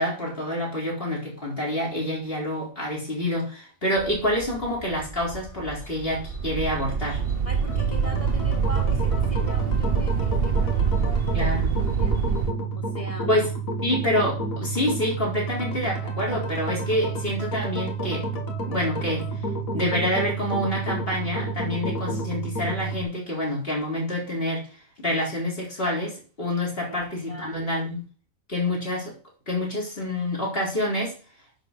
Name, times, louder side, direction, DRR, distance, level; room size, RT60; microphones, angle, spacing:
voice 1, 0.0-7.2 11.3-11.7 13.3-13.5 13.8-18.3 18.7-19.2 19.7-24.7 25.0-28.0 28.5-29.1 29.5-31.2, left 1 dB, 45° left, -3 dB, 4.4 m, -27 dB
sound 1, 3.9-12.4, right 1 dB, 25° left, 2.8 m, -42 dB
sound 2, 6.1-12.5, right 6 dB, 50° right, 1.0 m, -25 dB
voice 2, 7.4-12.2 12.8-13.3 26.9-27.0 27.3-27.5, right 1 dB, 25° right, 3 dB, 1.6 m, -40 dB
sound 3, 7.7-23.0, right 3 dB, 80° left, 2.4 m, -30 dB
10.5 x 5.0 x 5.8 m, 0.37 s
omnidirectional pair, 1.4 m